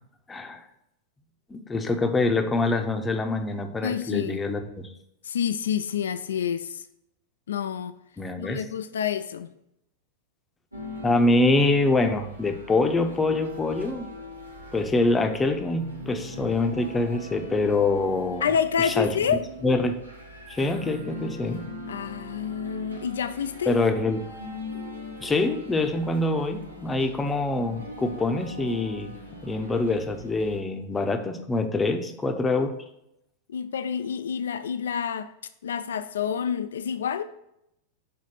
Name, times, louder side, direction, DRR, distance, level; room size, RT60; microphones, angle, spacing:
voice 1, 0.3-0.6 1.5-4.9 8.2-8.6 11.0-14.1 14.7-18.5 18.8-19.1 19.6-20.0 20.5-21.7 23.7-24.3 25.2-29.1 29.4-32.7, left 2 dB, 15° left, 6 dB, 0.7 m, -25 dB
voice 2, 3.8-4.5 5.2-6.8 7.5-7.9 8.4-9.5 18.4-19.4 21.9-23.8 33.5-35.3 35.6-37.2, left 8 dB, 65° left, 12 dB, 0.3 m, -28 dB
sound 1, 10.7-30.6, equal, 85° right, 1.1 m, -41 dB
6.4 x 4.0 x 5.6 m, 0.80 s
figure-of-eight pair, 90°, 0 cm